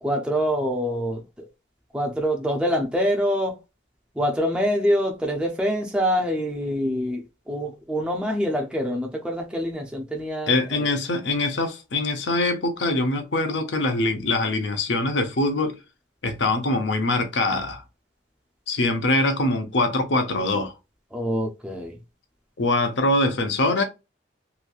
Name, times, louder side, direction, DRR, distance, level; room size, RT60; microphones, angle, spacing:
voice 1, 0.0-1.5 1.9-3.6 4.1-10.9 21.1-22.0, equal, 5° right, 0.5 m, -25 dB
voice 2, 10.5-15.8 16.2-17.8 18.7-20.7 22.6-23.8, left 2 dB, 65° left, 0.7 m, -23 dB
3.0 x 2.6 x 2.3 m
head